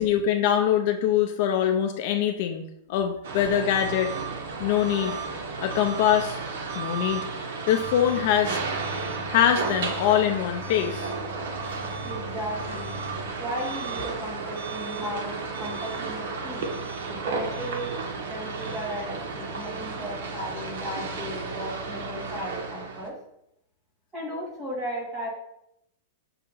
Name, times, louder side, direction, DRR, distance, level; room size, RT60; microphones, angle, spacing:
voice 1, 0.0-2.6 2.9-4.1 4.6-5.2 5.6-6.4 6.7-7.3 7.7-8.6 9.3-11.1, left 10 dB, 40° left, 5 dB, 0.4 m, -23 dB
sound 1, 3.2-23.1, right 4 dB, 65° right, 1.1 m, -33 dB
sound 2, 7.8-13.3, left 2 dB, 15° left, 1.4 m, -42 dB
voice 2, 12.0-13.0 13.4-16.7 17.1-23.1 24.1-25.3, equal, 5° right, -5 dB, 1.5 m, -36 dB
6.4 x 2.9 x 5.3 m, 0.78 s
supercardioid pair, 175°, 0 cm